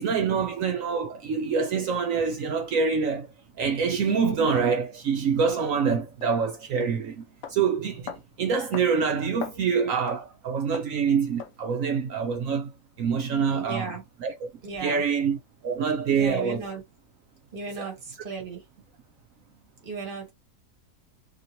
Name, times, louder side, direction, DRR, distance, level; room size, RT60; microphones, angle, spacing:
voice 1, 0.0-3.3 3.6-12.7 13.0-13.9 14.2-14.5 14.8-15.4 15.6-16.7 17.8-17.9, right 6 dB, 70° right, 0.8 m, -26 dB
sound 1, 4.5-4.6 5.6-5.7 6.2-6.4 6.8-7.0 7.4-7.6 8.1-8.3 8.7-8.9 9.2-9.6 10.1-10.2 10.7-11.0 11.4-11.6, left 8 dB, 65° left, 0.9 m, -38 dB
voice 2, 13.5-14.0 14.6-15.0 16.1-16.8 17.5-18.6 19.8-20.3, right 4 dB, 35° right, 1.1 m, -36 dB
2.9 x 2.8 x 2.8 m
omnidirectional pair, 1.8 m